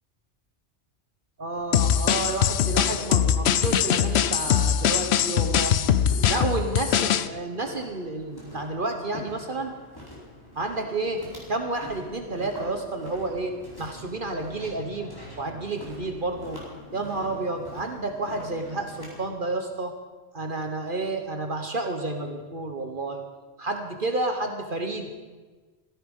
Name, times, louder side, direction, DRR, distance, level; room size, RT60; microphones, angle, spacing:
voice 1, 1.4-5.9 6.3-9.7 10.6-11.2 11.5-15.1 15.4-16.6 16.9-19.9 20.3-23.2 23.6-25.1, right 2 dB, 50° right, 5 dB, 1.4 m, -30 dB
Walk footsteps, 1.5-19.2, left 1 dB, 20° left, 4.5 m, -45 dB
sound 1, 1.7-7.3, left 9 dB, 70° left, 0.9 m, -22 dB
16.5 x 14.5 x 5.5 m, 1.3 s
omnidirectional pair, 1.2 m